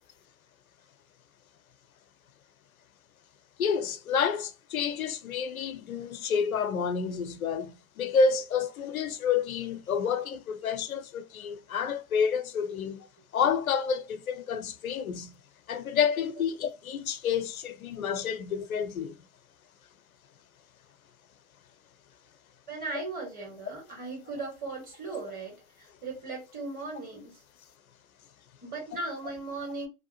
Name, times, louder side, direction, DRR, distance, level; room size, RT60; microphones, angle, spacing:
voice 1, 3.6-13.1 13.3-15.4 15.7-19.2, left 6 dB, 90° left, 0.5 m, -29 dB
voice 2, 22.7-27.4 28.6-29.9, right 3 dB, 20° right, 1.6 m, -37 dB
2.7 x 2.1 x 2.8 m
hypercardioid pair, 105°, 41 cm